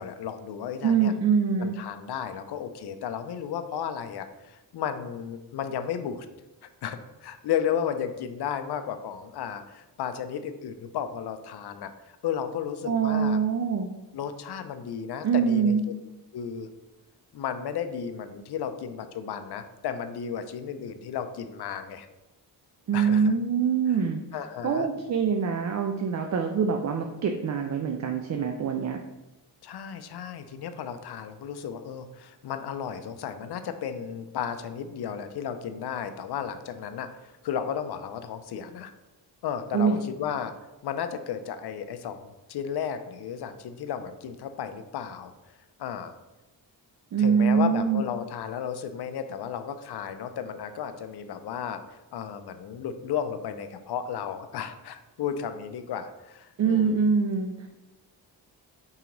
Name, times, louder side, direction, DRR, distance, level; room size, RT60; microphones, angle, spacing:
voice 1, 0.0-1.1 1.6-6.3 6.6-11.9 12.2-13.4 14.1-15.8 16.3-16.7 17.3-22.1 22.9-23.3 24.3-24.9 29.6-37.1 37.4-38.9 39.4-40.5 40.8-45.5 45.8-46.1 47.2-57.0, left 8 dB, 60° left, 9 dB, 0.6 m, -34 dB
voice 2, 0.8-1.8 12.8-13.9 15.2-15.8 22.9-24.2 24.6-29.0 39.7-40.0 47.1-48.0 56.6-57.7, right 6 dB, 40° right, 4 dB, 0.5 m, -24 dB
4.8 x 2.8 x 3.9 m, 0.99 s
cardioid pair, 60°, 45 cm